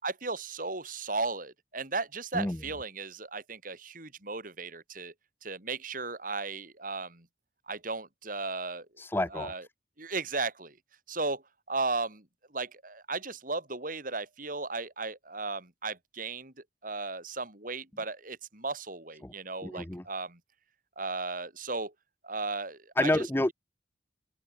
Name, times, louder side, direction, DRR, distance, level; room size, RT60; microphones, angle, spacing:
voice 1, 0.0-5.1 5.4-7.3 7.7-8.9 9.3-9.6 10.0-10.8 11.1-16.5 16.8-20.4 21.0-21.9 22.2-23.2, right 3 dB, 50° right, 6.2 m, -35 dB
voice 2, 9.0-9.5 19.2-19.3 19.6-20.0 23.0-23.5, left 1 dB, 10° left, 0.6 m, -28 dB
open air
head